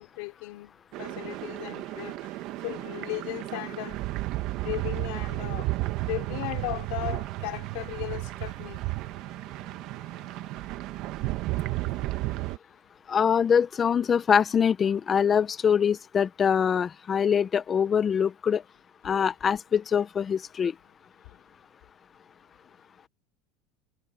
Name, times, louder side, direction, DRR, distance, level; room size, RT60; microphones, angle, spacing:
voice 1, 0.0-4.0 4.6-5.7 6.1-8.9 21.2-21.4, left 27 dB, 70° left, 3.1 m, -36 dB
sound 1, 0.9-12.6, right 18 dB, 55° right, 1.5 m, -33 dB
voice 2, 13.1-18.6 19.0-20.7, left 7 dB, 25° left, 0.9 m, -24 dB
supercardioid pair, 125°, 0 cm